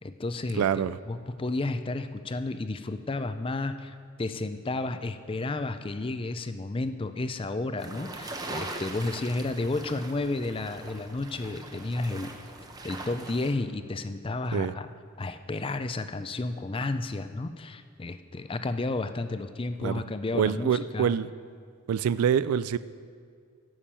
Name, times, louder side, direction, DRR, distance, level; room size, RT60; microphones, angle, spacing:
voice 1, 0.0-12.3 12.8-14.9 15.2-21.2, left 2 dB, 25° left, 10 dB, 0.4 m, -32 dB
voice 2, 0.6-1.0 14.5-14.7 19.8-20.0 20.4-21.3 21.9-22.8, right 8 dB, 90° right, 16 dB, 0.3 m, -25 dB
sound 1, 7.8-13.5, right 2 dB, 20° right, 0.8 m, -41 dB
11.0 x 7.2 x 7.4 m, 2.2 s
head